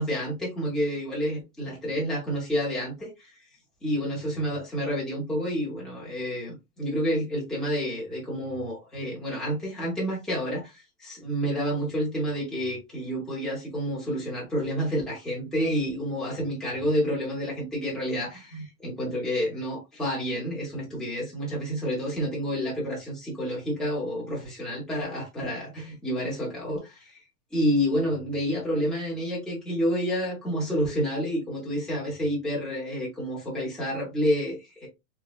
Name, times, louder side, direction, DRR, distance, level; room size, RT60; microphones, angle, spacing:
voice 1, 0.0-3.3 3.8-27.2 27.5-34.9, equal, ahead, 0.6 m, -29 dB
3.1 x 3.1 x 2.4 m
supercardioid pair, 165°, 44 cm